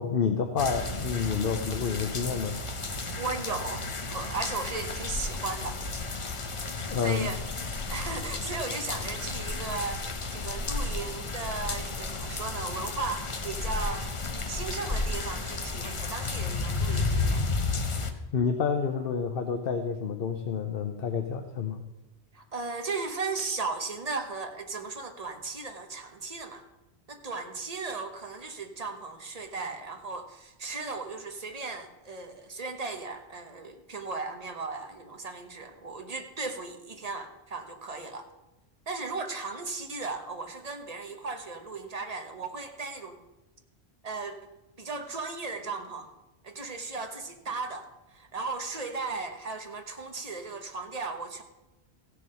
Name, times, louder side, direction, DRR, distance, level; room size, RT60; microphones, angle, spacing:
voice 1, 0.0-2.6 6.9-7.3 18.3-21.8, left 6 dB, 60° left, 5 dB, 1.0 m, -29 dB
sound 1, 0.6-18.1, left 3 dB, 30° left, 0.8 m, -32 dB
voice 2, 3.2-5.8 7.0-7.4 7.9-14.1 14.5-17.5 22.3-26.6 27.1-38.3 38.9-43.2 44.0-44.4 44.8-46.1 46.4-51.4, right 3 dB, 35° right, 5 dB, 1.2 m, -36 dB
15.5 x 6.9 x 5.6 m, 1.0 s
omnidirectional pair, 1.1 m